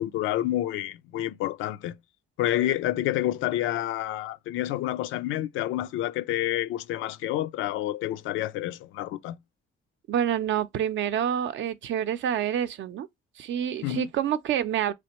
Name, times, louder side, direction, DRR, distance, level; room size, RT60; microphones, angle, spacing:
voice 1, 0.0-2.0 2.4-9.4 13.8-14.1, left 13 dB, 90° left, 0.4 m, -29 dB
voice 2, 10.1-13.1 13.4-14.9, right 10 dB, 70° right, 0.6 m, -27 dB
4.3 x 3.2 x 2.9 m
cardioid pair, 90°, 20 cm